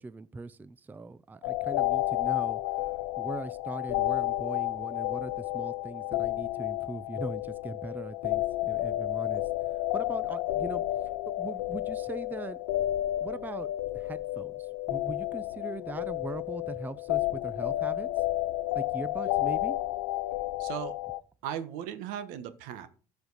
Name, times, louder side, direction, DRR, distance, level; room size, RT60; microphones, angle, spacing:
voice 1, 0.0-12.6 13.2-18.2 18.7-19.8, right 3 dB, 15° right, 0.4 m, -41 dB
sound 1, 1.4-21.2, left 15 dB, 85° left, 0.5 m, -31 dB
voice 2, 20.6-20.9 21.4-22.9, right 9 dB, 75° right, 1.2 m, -37 dB
14.0 x 5.2 x 4.0 m
supercardioid pair, 105°, 14 cm